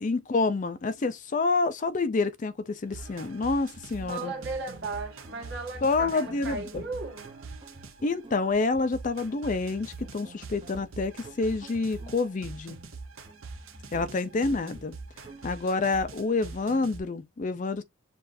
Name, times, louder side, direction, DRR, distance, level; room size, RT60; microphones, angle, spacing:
voice 1, 0.0-4.3 5.8-6.8 8.0-12.7 13.9-15.0 15.4-17.8, left 3 dB, 40° left, 0.4 m, -28 dB
sound 1, 2.9-8.2 8.9-17.0, right 4 dB, 85° right, 0.8 m, -43 dB
sound 2, 3.1-15.5, right 1 dB, 25° right, 0.6 m, -50 dB
voice 2, 4.1-7.3 13.9-14.8, right 3 dB, 60° right, 1.5 m, -37 dB
6.7 x 2.5 x 2.5 m
head